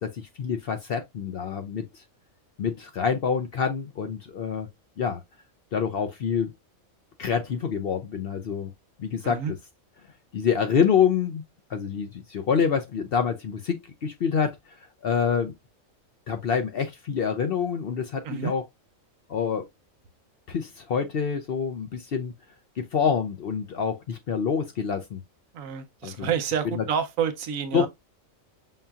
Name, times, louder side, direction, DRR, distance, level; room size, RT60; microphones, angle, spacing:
voice 1, 0.0-1.8 2.6-4.7 5.0-5.2 5.7-6.5 7.2-8.7 9.0-9.6 10.3-11.4 11.7-14.7 15.0-15.5 16.3-18.6 19.3-19.7 20.5-22.3 22.8-25.2 26.0-26.3 26.7-26.8 27.7-27.9, left 7 dB, 60° left, 0.7 m, -26 dB
voice 2, 25.5-27.9, right 7 dB, 80° right, 1.1 m, -28 dB
5.5 x 2.7 x 2.3 m
omnidirectional pair, 1.4 m